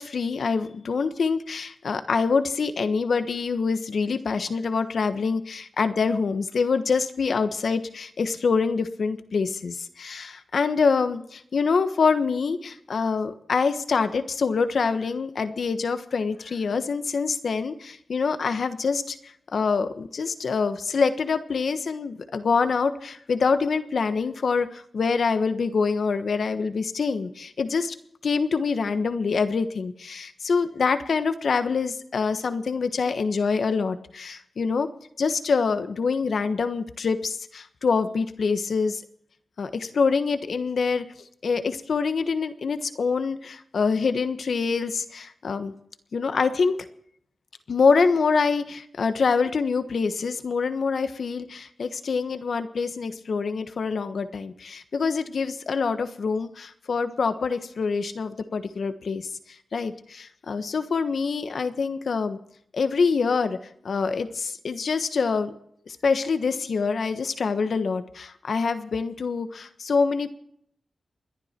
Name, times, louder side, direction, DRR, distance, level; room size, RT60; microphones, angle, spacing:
voice 1, 0.0-19.2 19.5-27.9 28.2-34.9 35.2-39.0 39.6-41.0 41.4-45.7 46.1-46.8 47.7-59.3 59.7-62.4 62.7-63.6 63.8-65.5 66.0-70.3, left 5 dB, 75° left, 10 dB, 1.3 m, -25 dB
28.5 x 11.0 x 4.5 m, 0.69 s
cardioid pair, 45°, 0 cm